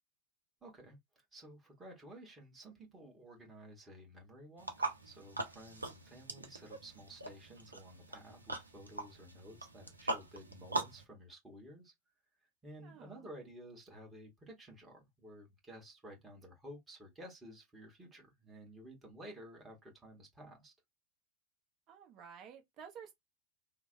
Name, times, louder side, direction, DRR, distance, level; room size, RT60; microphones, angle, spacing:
voice 1, 0.6-1.0 1.3-11.9 12.6-20.7, right 1 dB, 15° right, 1.3 m, -53 dB
sound 1, 4.6-11.0, right 2 dB, 80° right, 0.6 m, -42 dB
voice 2, 12.8-13.3 21.9-23.1, right 7 dB, 35° right, 0.8 m, -52 dB
3.1 x 2.1 x 2.5 m
figure-of-eight pair, 90°, 0 cm